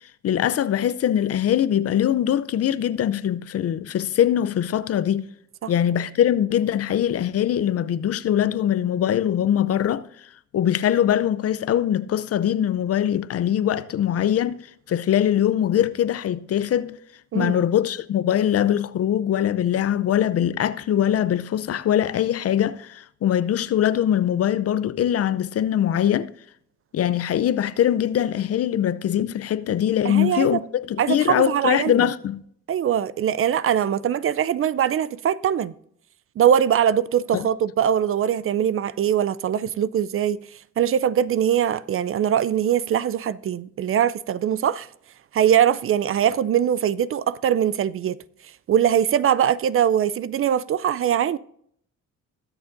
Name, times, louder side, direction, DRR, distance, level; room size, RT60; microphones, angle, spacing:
voice 1, 0.2-5.3 5.7-17.0 17.3-26.3 26.9-32.4 37.3-37.5, left 10 dB, 50° left, 0.6 m, -22 dB
voice 2, 30.0-30.6 31.0-32.1 32.7-35.7 36.4-40.4 40.8-44.9 45.3-48.2 48.7-51.4, right 9 dB, 45° right, 0.4 m, -22 dB
21.0 x 7.0 x 2.6 m
cardioid pair, 90°, 30 cm